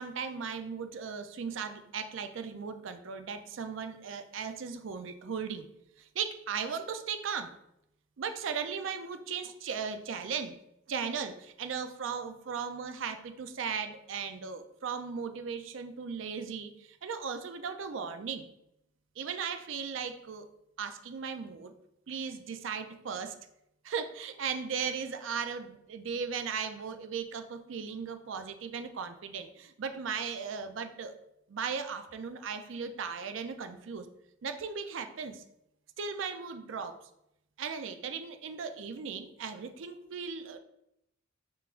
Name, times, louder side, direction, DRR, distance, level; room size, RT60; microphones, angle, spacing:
voice 1, 0.0-5.7 6.0-7.5 8.2-10.5 10.9-18.5 19.2-20.5 20.8-21.7 22.1-23.3 23.8-31.1 31.5-34.1 34.4-35.4 36.0-37.0 37.6-40.6, right 6 dB, 75° right, 8 dB, 0.4 m, -37 dB
5.7 x 3.8 x 2.5 m, 0.81 s
head